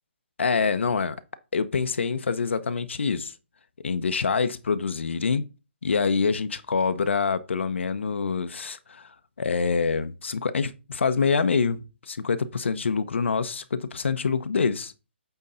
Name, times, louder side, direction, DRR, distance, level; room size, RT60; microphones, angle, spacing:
voice 1, 0.4-1.2 1.5-3.3 3.8-5.4 5.8-9.1 9.4-14.9, left 5 dB, 80° left, 0.8 m, -26 dB
8.1 x 3.8 x 5.5 m
hypercardioid pair, 165°, 6 cm